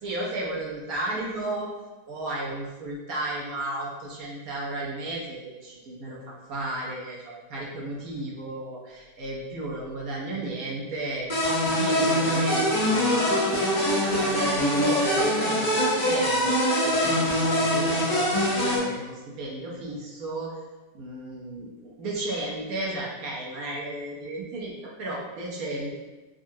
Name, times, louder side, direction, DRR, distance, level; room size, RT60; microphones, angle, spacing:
voice 1, 0.0-1.7 2.1-13.5 14.0-20.5 20.9-26.0, right 2 dB, 65° right, -4 dB, 1.0 m, -34 dB
sound 1, 11.3-18.8, equal, 35° left, 0.8 m, -23 dB
3.7 x 2.3 x 2.6 m, 1.2 s
omnidirectional pair, 1.8 m